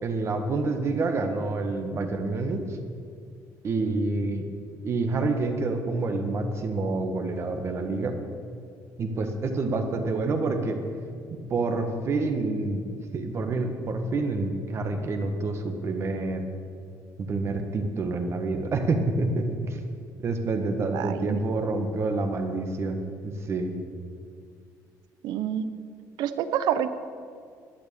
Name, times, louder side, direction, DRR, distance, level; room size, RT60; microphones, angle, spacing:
voice 1, 0.0-2.7 3.6-4.5 4.8-8.1 9.0-10.8 11.5-12.8 13.1-16.5 17.2-19.8 20.2-23.7, right 3 dB, 40° right, 5 dB, 1.5 m, -27 dB
voice 2, 20.9-21.4 25.2-25.7 26.2-27.0, right 9 dB, 75° right, 12 dB, 0.8 m, -28 dB
12.0 x 9.1 x 8.6 m, 2.2 s
cardioid pair, 135°, 7 cm